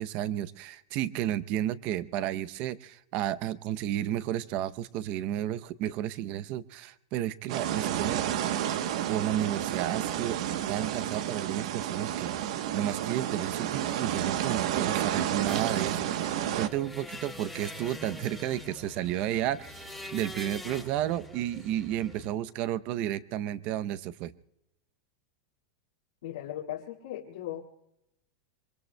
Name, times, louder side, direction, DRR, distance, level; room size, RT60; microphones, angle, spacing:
voice 1, 0.0-8.2 9.1-10.4 10.7-24.3, right 12 dB, 45° right, 16 dB, 0.7 m, -32 dB
sound 1, 7.5-16.7, right 11 dB, 70° right, 1.0 m, -31 dB
sound 2, 15.5-22.3, left 1 dB, ahead, 2.5 m, -44 dB
voice 2, 26.2-27.7, left 12 dB, 85° left, -4 dB, 2.0 m, -38 dB
25.5 x 24.0 x 2.2 m, 0.80 s
supercardioid pair, 150°, 3 cm